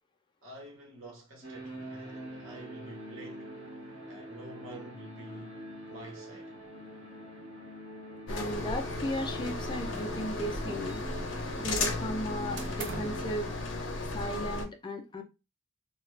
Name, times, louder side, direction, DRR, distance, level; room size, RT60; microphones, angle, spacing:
voice 1, 0.4-3.5 4.1-5.6 5.9-6.6, right 1 dB, 85° right, 1.0 m, -48 dB
sound 1, 1.4-13.2, right 1 dB, 25° right, 1.0 m, -44 dB
sound 2, 8.3-14.6, left 2 dB, 65° left, 0.7 m, -35 dB
voice 2, 8.3-11.0 11.6-13.5 14.1-15.2, equal, 25° left, 0.4 m, -36 dB
sound 3, 9.4-10.2 10.5-11.4 12.6-13.3, right 4 dB, 60° right, 0.5 m, -44 dB
2.4 x 2.2 x 3.1 m
head